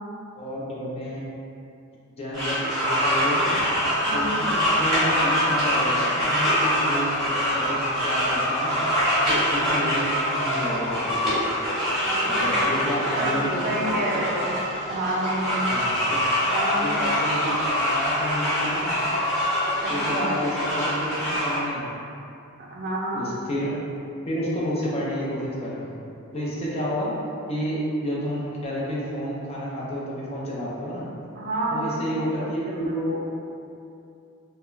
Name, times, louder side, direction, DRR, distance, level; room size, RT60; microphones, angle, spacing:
voice 1, 0.3-1.2 2.2-3.6 4.1-8.8 9.3-11.5 12.3-14.2 15.7-16.2 16.8-18.9 19.9-21.9 23.1-23.8 24.3-25.9 26.3-27.1 27.5-31.1 31.7-33.2, equal, 30° left, -6 dB, 0.4 m, -30 dB
sound 1, 2.3-21.6, equal, ahead, 1.0 m, -24 dB
voice 2, 4.1-4.4 11.9-12.5 13.2-13.4 13.6-14.5 14.9-15.7 16.5-16.9 19.8-20.3 22.7-23.3 31.3-32.9, right 1 dB, 40° right, -4 dB, 0.4 m, -29 dB
2.3 x 2.1 x 3.1 m, 2.6 s
head